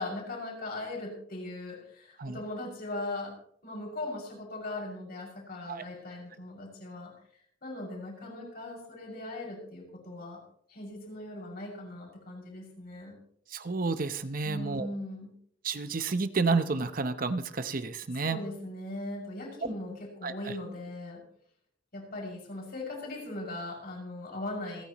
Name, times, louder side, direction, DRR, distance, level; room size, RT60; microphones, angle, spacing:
voice 1, 0.0-3.3 3.6-7.1 7.6-10.4 10.7-13.2 14.4-15.3 18.2-21.2 21.9-24.8, left 2 dB, 55° left, -2 dB, 6.2 m, -39 dB
voice 2, 13.5-14.9 15.6-18.4 19.6-19.7 20.2-20.3, right 4 dB, 50° right, 11 dB, 0.8 m, -30 dB
28.0 x 10.0 x 3.0 m, 0.63 s
head